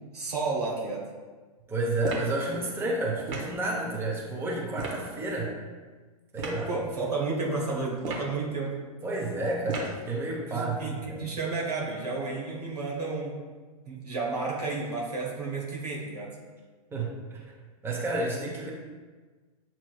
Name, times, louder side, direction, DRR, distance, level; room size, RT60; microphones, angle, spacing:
voice 1, 0.1-1.0 6.7-8.8 10.5-13.4 13.9-16.3, right 3 dB, 85° right, -3 dB, 1.3 m, -31 dB
voice 2, 1.7-5.5 6.3-6.7 9.0-10.8 11.0-11.3 16.9-17.6 17.8-18.7, right 2 dB, 10° right, -3 dB, 0.9 m, -30 dB
sound 1, 2.0-2.4 3.3-3.6 4.8-5.0 6.4-6.6 8.0-8.4 9.7-10.0, right 3 dB, 55° right, 1.1 m, -34 dB
7.4 x 3.0 x 2.3 m, 1.4 s
hypercardioid pair, 105°, 20 cm